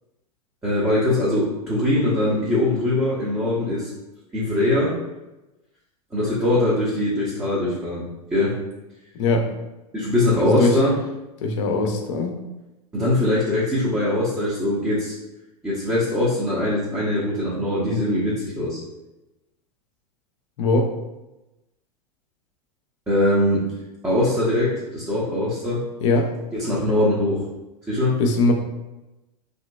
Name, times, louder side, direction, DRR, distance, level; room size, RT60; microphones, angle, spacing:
voice 1, 0.6-3.9 4.3-5.0 6.1-8.5 9.9-11.0 12.9-15.1 15.6-18.8 23.1-23.6 24.0-25.9 26.5-27.4 27.9-28.2, left 1 dB, 10° right, -9 dB, 0.7 m, -22 dB
voice 2, 9.1-9.5 10.4-10.8 11.4-12.4 20.6-20.9 26.0-26.3 28.2-28.5, left 3 dB, 50° left, 4 dB, 0.5 m, -21 dB
2.8 x 2.6 x 2.2 m, 1.0 s
figure-of-eight pair, 90°, 20 cm